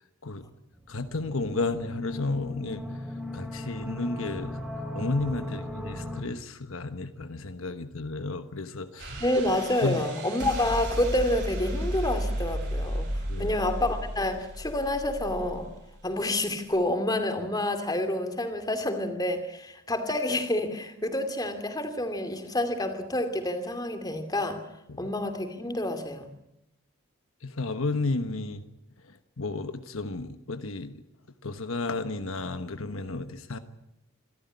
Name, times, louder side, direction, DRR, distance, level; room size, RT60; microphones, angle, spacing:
sound 1, 0.7-6.2, left 1 dB, 5° right, 3.5 m, -37 dB
voice 1, 0.9-2.8 3.3-4.6 4.9-9.2 9.8-10.0 13.3-13.6 24.9-25.1 27.4-28.6 29.4-30.9 31.4-33.6, left 3 dB, 70° left, 9 dB, 1.2 m, -32 dB
sound 2, 9.0-16.7, right 1 dB, 55° right, 7.8 m, -34 dB
voice 2, 9.2-15.7 16.0-24.6 25.0-26.3, left 1 dB, 20° left, 7 dB, 2.5 m, -28 dB
27.0 x 13.5 x 9.8 m, 0.86 s
head